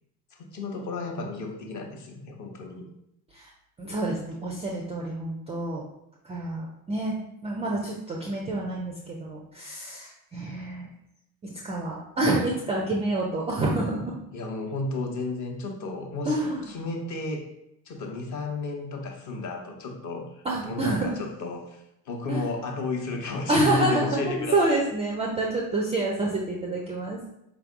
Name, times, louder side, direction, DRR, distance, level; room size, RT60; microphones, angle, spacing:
voice 1, 0.4-2.9 14.3-17.5 17.9-24.8, left 3 dB, 40° left, 3 dB, 0.8 m, -33 dB
voice 2, 3.8-5.8 6.2-7.2 7.4-10.9 11.4-14.2 16.3-16.7 20.4-21.2 22.3-22.4 23.5-27.2, right 2 dB, 15° right, -2 dB, 0.3 m, -28 dB
4.5 x 3.3 x 2.5 m, 0.81 s
figure-of-eight pair, 55°, 49 cm